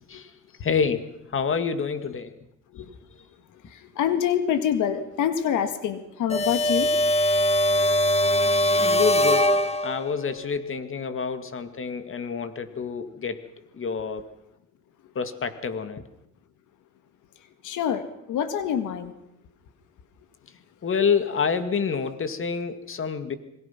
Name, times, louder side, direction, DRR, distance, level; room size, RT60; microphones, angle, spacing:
voice 1, 0.6-2.3 8.7-9.5 9.8-13.4 13.8-14.3 15.2-16.0 20.8-23.4, left 6 dB, 45° left, 10 dB, 2.2 m, -27 dB
voice 2, 3.7-6.9 17.6-19.1, left 9 dB, 85° left, 10 dB, 1.9 m, -26 dB
sound 1, 6.3-10.2, equal, 20° left, 2.0 m, -21 dB
27.0 x 22.5 x 5.9 m, 0.82 s
cardioid pair, 90°, 30 cm